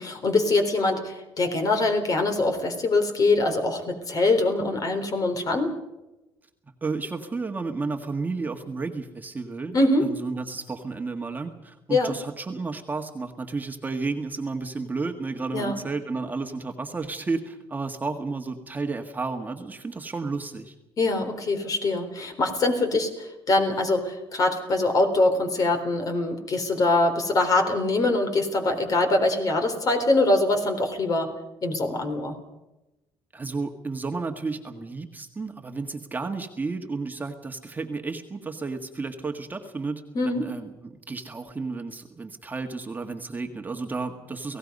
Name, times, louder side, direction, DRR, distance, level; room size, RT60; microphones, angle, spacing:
voice 1, 0.0-5.7 9.7-10.1 11.9-12.1 15.5-15.8 21.0-31.3 31.6-32.4 40.1-40.5, left 2 dB, 40° left, 6 dB, 3.8 m, -23 dB
voice 2, 6.8-20.7 33.3-44.6, right 3 dB, 20° right, 4 dB, 1.7 m, -32 dB
29.5 x 17.5 x 5.4 m, 0.99 s
cardioid pair, 115°, 9 cm